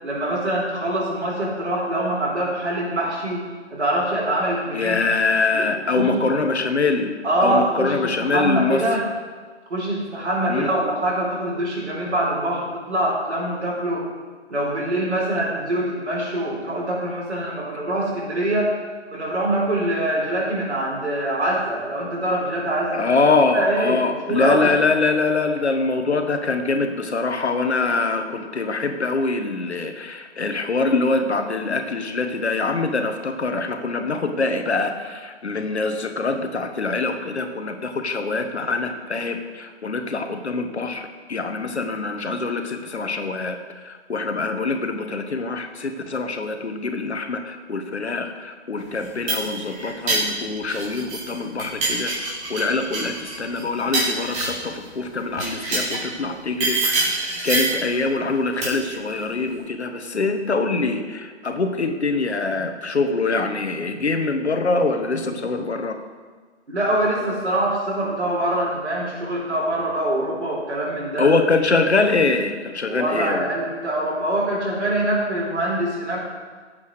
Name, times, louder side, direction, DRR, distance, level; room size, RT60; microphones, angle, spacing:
voice 1, 0.0-3.4 3.7-5.0 5.5-5.7 5.9-6.2 7.2-9.1 9.7-14.0 14.5-18.7 19.1-23.1 23.5-24.7 66.7-71.3 72.9-76.2, right 1 dB, 75° right, -6 dB, 4.8 m, -24 dB
voice 2, 4.7-7.1 7.4-8.8 10.5-10.7 22.9-57.1 57.4-66.0 71.2-73.5, left 3 dB, 70° left, 6 dB, 1.7 m, -24 dB
sound 1, 48.9-51.3 51.6-54.7 55.3-56.1 56.6-57.8 58.6-58.9, right 2 dB, 20° right, 3.8 m, -25 dB
18.5 x 8.4 x 5.0 m, 1.5 s
figure-of-eight pair, 130°, 34 cm